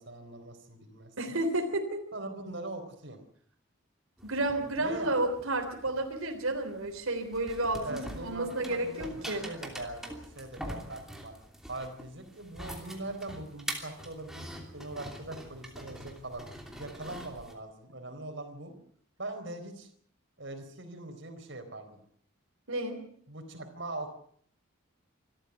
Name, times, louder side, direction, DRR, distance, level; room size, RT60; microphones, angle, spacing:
voice 1, 0.0-1.1 2.1-3.2 4.8-5.2 7.8-11.3 11.7-18.7 19.2-19.9 20.4-22.0 23.3-24.1, right 2 dB, 60° right, 5 dB, 4.1 m, -41 dB
voice 2, 1.2-2.0 4.2-9.5 22.7-23.0, right 2 dB, 85° right, 3 dB, 3.6 m, -31 dB
sound 1, 4.2-17.5, equal, ahead, 2.9 m, -45 dB
26.0 x 13.5 x 8.1 m, 0.62 s
head